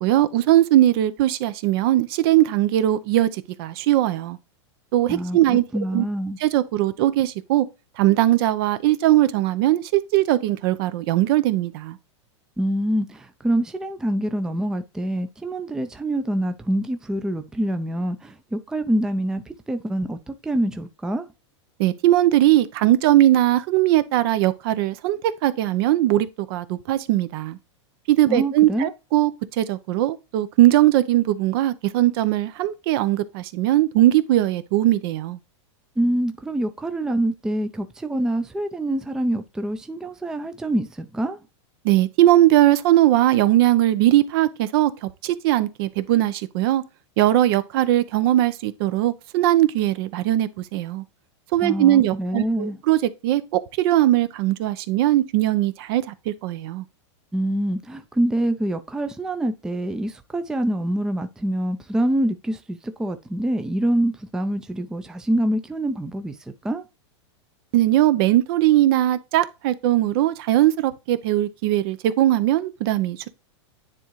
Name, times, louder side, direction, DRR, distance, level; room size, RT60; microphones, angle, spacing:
voice 1, 0.0-4.4 4.9-5.6 5.9-6.0 6.4-7.7 8.0-12.0 21.8-27.6 28.1-35.4 41.8-46.8 47.2-51.0 51.5-56.8 67.7-73.3, right 14 dB, 55° right, 0.6 m, -20 dB
voice 2, 5.1-6.4 12.6-21.3 28.3-28.9 36.0-41.4 51.6-52.8 57.3-66.4 66.6-66.8, right 1 dB, 5° right, 0.4 m, -25 dB
9.8 x 3.7 x 3.0 m
supercardioid pair, 140°, 15 cm